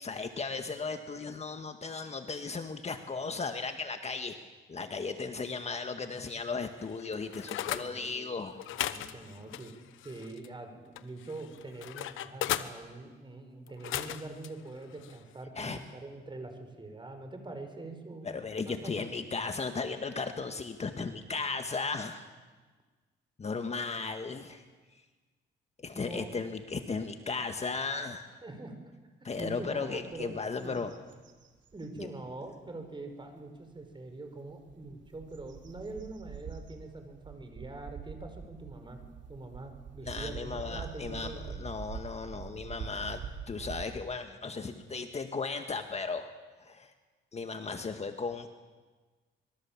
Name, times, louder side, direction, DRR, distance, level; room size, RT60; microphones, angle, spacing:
voice 1, 0.0-8.6 15.6-15.8 18.2-22.2 23.4-24.6 25.8-28.3 29.2-30.9 32.0-32.1 40.0-43.2 43.5-46.3 46.6-46.9 47.3-48.5, left 4 dB, 35° left, 6 dB, 1.8 m, -36 dB
sound 1, 6.8-7.9 8.6-10.5 11.0-12.7 13.7-14.5 15.0-15.2, left 12 dB, 85° left, 1.1 m, -37 dB
voice 2, 7.4-8.5 8.9-9.7 10.0-18.3 18.7-19.1 25.9-26.3 28.4-28.7 29.3-30.8 31.7-39.0 39.3-41.6, right 2 dB, 25° right, 6 dB, 5.0 m, -44 dB
sound 2, 29.4-29.5 30.0-30.2 30.6-32.1 32.7-32.8 34.5-43.8, right 6 dB, 70° right, 2.8 m, -44 dB
25.5 x 22.0 x 7.5 m, 1.3 s
cardioid pair, 90°, 20 cm